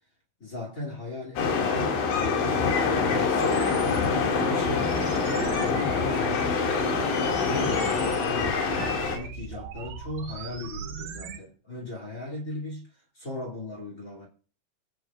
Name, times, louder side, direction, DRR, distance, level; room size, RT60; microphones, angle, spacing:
voice 1, 0.4-2.7 3.0-5.0 5.6-7.0 7.4-8.6 9.0-14.3, left 2 dB, 30° left, 1.7 m, -38 dB
sound 1, 1.4-9.2, left 5 dB, 65° left, 4.2 m, -25 dB
sound 2, 3.4-11.4, right 7 dB, 70° right, 2.5 m, -39 dB
25.5 x 8.8 x 2.4 m
omnidirectional pair, 5.8 m